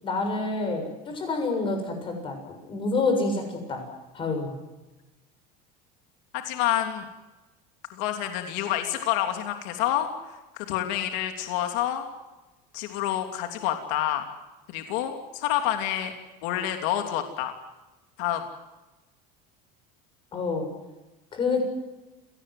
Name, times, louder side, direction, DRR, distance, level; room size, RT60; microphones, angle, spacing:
voice 1, 0.0-2.4 2.7-3.8 4.1-4.6 20.3-20.7 21.3-21.6, left 3 dB, 25° left, 4 dB, 7.0 m, -27 dB
voice 2, 6.3-7.1 7.9-12.1 12.7-14.2 14.7-16.1 16.4-17.5 18.2-18.4, left 12 dB, 65° left, 5 dB, 3.0 m, -28 dB
29.0 x 19.0 x 7.9 m, 1.1 s
cardioid pair, 165°, 21 cm